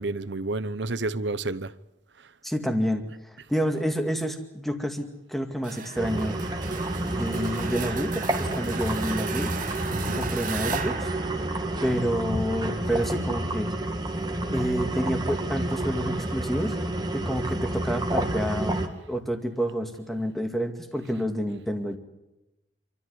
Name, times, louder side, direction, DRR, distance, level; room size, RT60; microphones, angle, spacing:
voice 1, 0.0-1.7 9.9-10.3, right 2 dB, 70° right, 0.9 m, -30 dB
voice 2, 2.4-6.4 7.1-9.5 10.1-11.1 11.8-13.7 14.5-16.8 17.1-18.8 19.1-22.0, equal, ahead, 2.2 m, -29 dB
sound 1, 5.6-12.4, right 6 dB, 45° right, 1.7 m, -36 dB
sound 2, 6.0-18.9, right 1 dB, 20° right, 2.0 m, -29 dB
27.5 x 13.5 x 9.6 m
head